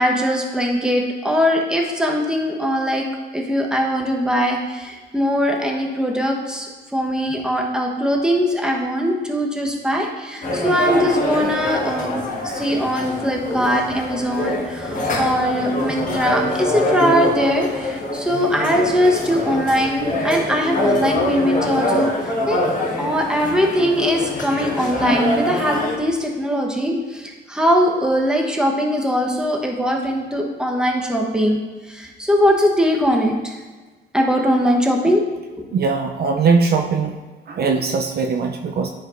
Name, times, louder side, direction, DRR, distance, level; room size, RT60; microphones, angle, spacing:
voice 1, 0.0-3.1 3.3-12.1 12.4-22.6 23.0-31.6 31.9-33.5 34.1-35.2 35.6-35.7, equal, 5° right, 0 dB, 1.1 m, -21 dB
sound 1, 10.4-26.0, left 1 dB, 40° left, 1.5 m, -24 dB
voice 2, 35.7-37.1 37.5-38.9, right 4 dB, 55° right, 4 dB, 0.5 m, -20 dB
10.0 x 4.5 x 2.6 m, 1.3 s
cardioid pair, 90°, 20 cm